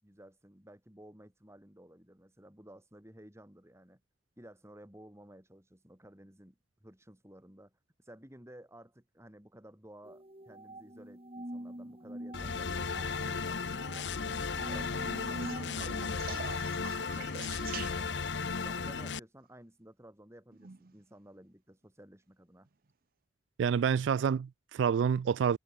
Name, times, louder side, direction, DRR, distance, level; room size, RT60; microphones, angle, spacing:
voice 1, 0.0-4.0 4.4-18.2 18.5-22.7, right 1 dB, 15° right, 5.3 m, -55 dB
sound 1, 10.0-16.1, right 1 dB, 30° right, 3.1 m, -45 dB
sound 2, 12.3-19.2, left 5 dB, 75° left, 0.9 m, -35 dB
sound 3, 14.7-18.4 20.5-21.0 22.7-22.8, right 7 dB, 55° right, 0.7 m, -46 dB
voice 2, 23.6-25.6, right 7 dB, 85° right, 0.3 m, -28 dB
head